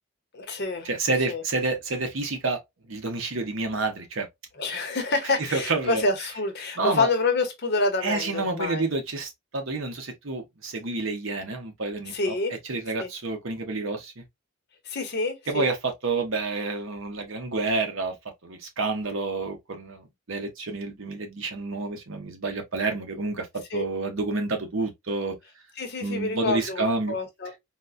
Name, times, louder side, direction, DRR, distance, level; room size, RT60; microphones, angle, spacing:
voice 1, 0.3-0.9 1.3-1.4 4.6-8.8 12.1-12.6 13.0-13.1 14.8-15.7 23.7-23.9 25.8-27.5, left 3 dB, 50° left, 0.8 m, -27 dB
voice 2, 0.8-2.6 2.9-4.3 5.4-6.0 6.8-7.1 8.0-12.3 12.7-14.2 15.5-18.1 18.4-23.5 23.7-25.4 26.0-27.1, right 3 dB, 65° right, 0.9 m, -29 dB
4.0 x 2.1 x 2.4 m
head